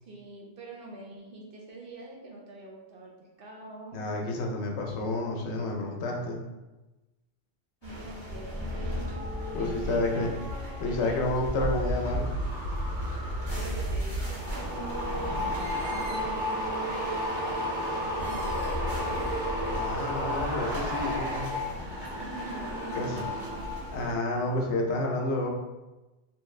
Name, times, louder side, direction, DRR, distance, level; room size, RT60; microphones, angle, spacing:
voice 1, 0.0-4.0 7.8-10.3 10.8-12.3 12.9-17.9 18.2-19.2 22.1-23.8, right 2 dB, 60° right, -1 dB, 0.6 m, -46 dB
voice 2, 3.9-6.4 9.5-10.3 10.8-12.3 19.7-21.5 23.0-23.3 23.9-25.5, left 2 dB, 75° left, 1 dB, 0.8 m, -30 dB
sound 1, 7.8-24.1, left 1 dB, 35° left, 1.1 m, -38 dB
sound 2, 11.2-23.9 24.2-24.6, equal, 80° right, 1.1 m, -32 dB
2.9 x 2.3 x 3.1 m, 1.1 s
omnidirectional pair, 1.2 m